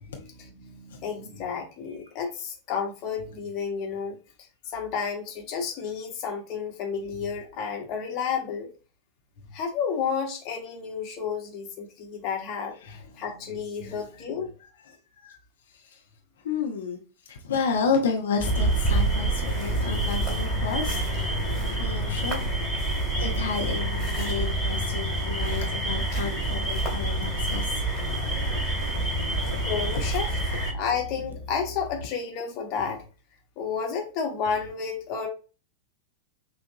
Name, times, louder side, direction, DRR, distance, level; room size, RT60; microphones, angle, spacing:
voice 1, 0.0-4.2 4.6-8.7 9.4-14.5 25.3-25.7 26.2-26.9 29.7-30.4 30.7-33.0 33.6-35.3, left 6 dB, 40° left, 1.2 m, -32 dB
voice 2, 14.8-15.4 15.7-16.0 16.4-17.0 17.3-21.4 21.7-22.4 23.2-27.8 28.9-29.2 29.5-29.6, left 5 dB, 60° left, 0.7 m, -31 dB
sound 1, 18.4-30.7, right 2 dB, ahead, 2.1 m, -27 dB
sound 2, 26.3-32.1, equal, 70° right, 0.5 m, -39 dB
5.9 x 2.5 x 2.7 m
figure-of-eight pair, 90°, 0 cm